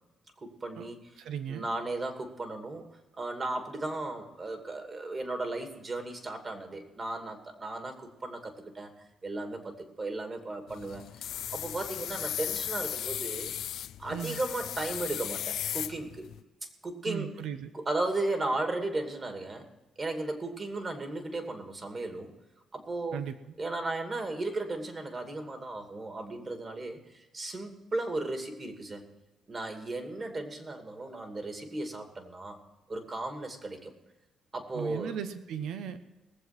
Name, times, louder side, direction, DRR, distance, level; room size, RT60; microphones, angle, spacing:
voice 1, 0.4-1.0 1.5-2.9 3.2-8.9 9.2-11.0 11.5-13.5 14.0-16.3 16.8-17.3 17.7-19.7 20.0-22.3 22.7-23.2 23.6-29.0 29.5-32.6 32.9-33.9 34.5-35.1, right 2 dB, 35° right, 5 dB, 2.5 m, -35 dB
voice 2, 1.2-1.7 14.1-14.4 17.0-17.7 23.1-23.4 34.7-36.0, right 8 dB, 80° right, 10 dB, 1.0 m, -36 dB
sound 1, 10.7-16.4, left 11 dB, 75° left, 0.4 m, -36 dB
19.0 x 7.7 x 6.0 m, 1.0 s
cardioid pair, 90°, 0 cm